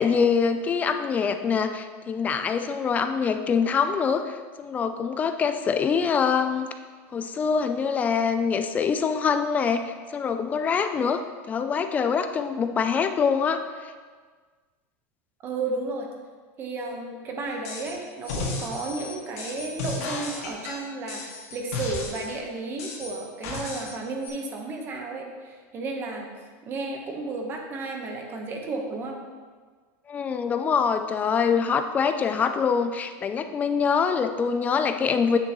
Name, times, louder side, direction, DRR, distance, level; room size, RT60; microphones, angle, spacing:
voice 1, 0.0-6.7 7.1-11.2 11.5-13.9 30.1-35.4, left 6 dB, 20° left, 8 dB, 0.4 m, -24 dB
voice 2, 15.4-16.1 16.6-26.3 26.6-29.2, right 3 dB, 30° right, 1 dB, 1.1 m, -33 dB
sound 1, 17.6-17.9 18.2-22.4 22.8-23.9 24.2-24.3, left 3 dB, 85° left, 2.1 m, -34 dB
8.9 x 6.7 x 3.1 m, 1.5 s
supercardioid pair, 155°, 8 cm